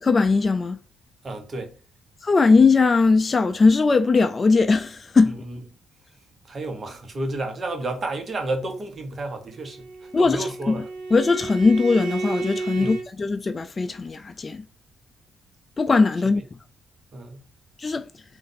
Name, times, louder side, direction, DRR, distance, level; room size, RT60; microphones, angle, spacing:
voice 1, 0.0-0.8 2.2-5.4 10.1-10.8 11.1-14.6 15.8-16.4 17.8-18.1, left 4 dB, 30° left, 0.3 m, -19 dB
voice 2, 1.2-1.7 5.2-5.6 6.5-10.9 12.8-13.0 16.3-16.4 17.1-17.4, right 2 dB, 40° right, 1.0 m, -31 dB
Bowed string instrument, 9.5-13.1, right 3 dB, 80° right, 0.9 m, -32 dB
3.8 x 2.6 x 4.0 m
cardioid pair, 90°, 0 cm